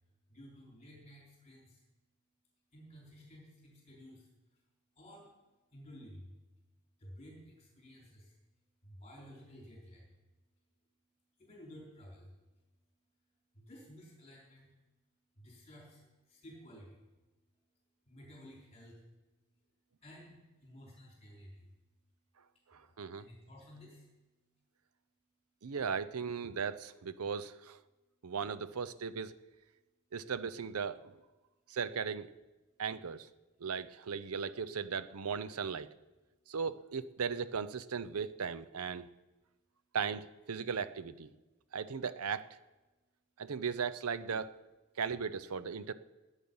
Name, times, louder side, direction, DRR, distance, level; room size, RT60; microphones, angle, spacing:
voice 1, 0.3-1.8 2.7-4.6 4.9-5.3 5.7-6.4 7.0-8.4 8.8-10.2 10.6-10.7 11.4-12.6 13.5-14.8 15.4-17.0 18.1-19.1 20.0-21.7 22.5-24.1, equal, 30° left, -4 dB, 4.3 m, -54 dB
voice 2, 22.7-23.2 25.6-27.8 28.2-29.3 30.1-31.1 31.7-32.3 32.8-33.3 33.6-35.9 36.5-39.1 39.9-41.3 41.7-42.5 43.4-44.5 45.0-45.9, right 6 dB, 85° right, 14 dB, 0.6 m, -37 dB
21.0 x 8.2 x 5.5 m, 1.1 s
head